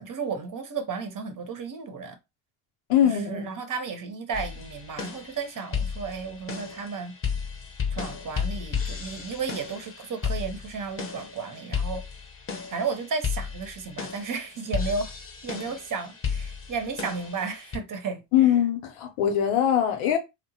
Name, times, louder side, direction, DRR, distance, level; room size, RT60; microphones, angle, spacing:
voice 1, 0.0-2.2 3.0-7.2 7.9-12.0 12.7-15.1 15.4-18.2, right 5 dB, 40° right, 0.8 m, -33 dB
voice 2, 2.9-3.5 18.3-20.2, left 10 dB, 80° left, 0.8 m, -22 dB
sound 1, 4.3-17.8, left 6 dB, 25° left, 0.8 m, -34 dB
2.8 x 2.1 x 2.8 m
supercardioid pair, 75°, 49 cm